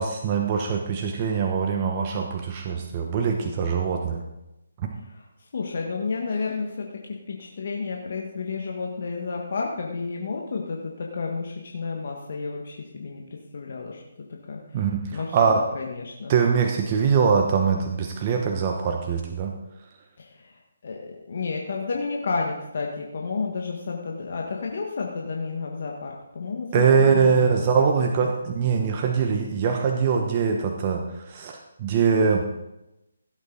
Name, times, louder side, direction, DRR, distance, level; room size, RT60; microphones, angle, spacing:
voice 1, 0.0-4.2 4.8-4.9 14.7-15.6 16.3-19.5 26.7-32.4, right 6 dB, 30° right, 3 dB, 1.1 m, -23 dB
voice 2, 5.5-7.0 7.3-14.0 14.5-16.3 20.2-27.5 28.0-28.1, left 4 dB, 55° left, 0 dB, 1.7 m, -31 dB
16.0 x 8.3 x 4.0 m, 0.92 s
figure-of-eight pair, 150°, 0 cm